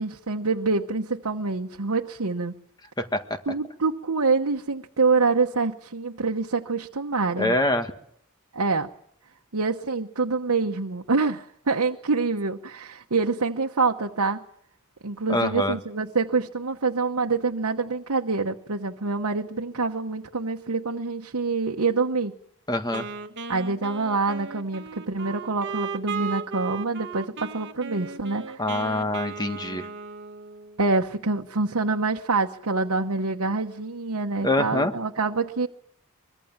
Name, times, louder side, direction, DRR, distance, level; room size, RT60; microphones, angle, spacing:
voice 1, 0.0-2.5 3.5-7.5 8.5-8.9 9.5-14.4 15.0-22.3 23.5-29.0 30.8-35.7, right 4 dB, 85° right, 1 dB, 1.1 m, -26 dB
voice 2, 7.4-7.9 15.3-15.8 22.7-23.0 28.6-29.9 34.4-34.9, left 1 dB, 20° left, 7 dB, 1.7 m, -24 dB
Wind instrument woodwind instrument, 22.9-30.8, right 5 dB, 55° right, 1.5 m, -36 dB
24.0 x 22.0 x 7.4 m, 0.71 s
head